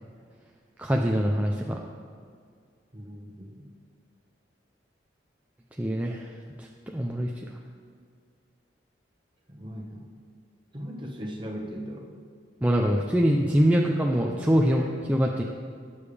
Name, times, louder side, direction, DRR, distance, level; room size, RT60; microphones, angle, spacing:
voice 1, 0.8-1.8 5.8-6.7 6.9-7.5 12.6-15.4, equal, 10° right, 0 dB, 0.6 m, -24 dB
voice 2, 2.9-3.7 9.5-10.2 10.7-12.1, equal, 25° right, -1 dB, 1.4 m, -38 dB
18.5 x 7.1 x 3.4 m, 2.1 s
head